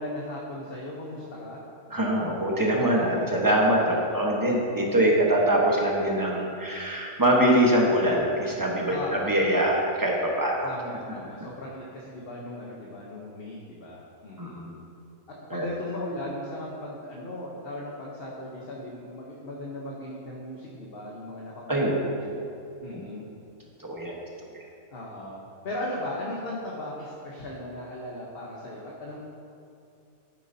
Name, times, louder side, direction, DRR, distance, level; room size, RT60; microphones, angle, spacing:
voice 1, 0.0-1.6 3.9-4.2 5.4-5.5 8.9-9.4 10.6-14.6 15.3-22.4 22.8-23.3 24.9-25.4 25.6-29.2, left 1 dB, 45° left, -4 dB, 1.1 m, -37 dB
voice 2, 1.9-10.7 14.4-14.8 15.5-15.7 21.7-22.1 22.9-23.0 23.8-24.1, right 1 dB, 15° right, -2 dB, 1.1 m, -23 dB
11.5 x 9.0 x 2.8 m, 2.6 s
omnidirectional pair, 1.6 m